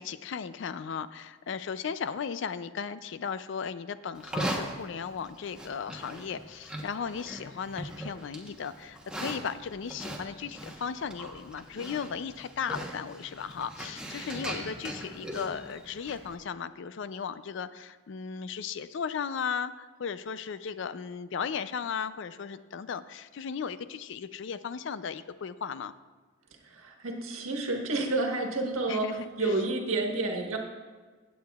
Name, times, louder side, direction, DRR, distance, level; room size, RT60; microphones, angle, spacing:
voice 1, 0.0-25.9 28.9-29.5, left 6 dB, 60° left, 14 dB, 0.4 m, -36 dB
Livestock farm animals working animals, 4.1-16.3, right 1 dB, 5° right, 1.0 m, -40 dB
voice 2, 26.6-30.6, right 2 dB, 80° right, 2 dB, 1.4 m, -30 dB
16.0 x 8.4 x 2.4 m, 1.4 s
head